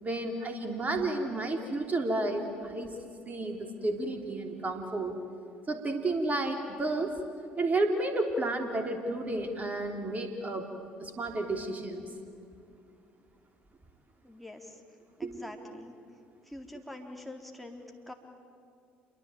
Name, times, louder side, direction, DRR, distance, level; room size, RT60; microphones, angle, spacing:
voice 1, 0.0-3.0 3.2-5.1 5.7-7.2 7.5-10.7 11.0-12.1 15.2-15.4, right 2 dB, 30° right, 5 dB, 3.3 m, -31 dB
voice 2, 14.2-14.8 15.2-15.9 16.4-18.1, left 1 dB, ahead, 2 dB, 3.8 m, -45 dB
28.0 x 23.5 x 9.0 m, 2.4 s
figure-of-eight pair, 55°, 5 cm